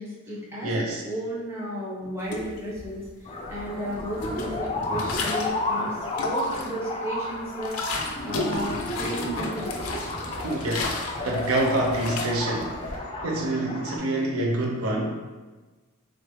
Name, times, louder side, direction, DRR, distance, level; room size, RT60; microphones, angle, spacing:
voice 1, 0.0-3.1 3.5-6.0 6.2-8.0 8.2-9.8, equal, 10° right, -7 dB, 0.9 m, -33 dB
voice 2, 0.6-1.0 10.4-15.1, right 1 dB, 75° right, 0 dB, 0.5 m, -27 dB
sound 1, 2.2-3.1 3.4-5.6 6.0-6.9 7.3-13.0, left 3 dB, 80° left, 0.5 m, -34 dB
sound 2, 3.3-14.0, left 1 dB, 25° left, 0.4 m, -32 dB
3.5 x 3.1 x 3.0 m, 1.2 s
head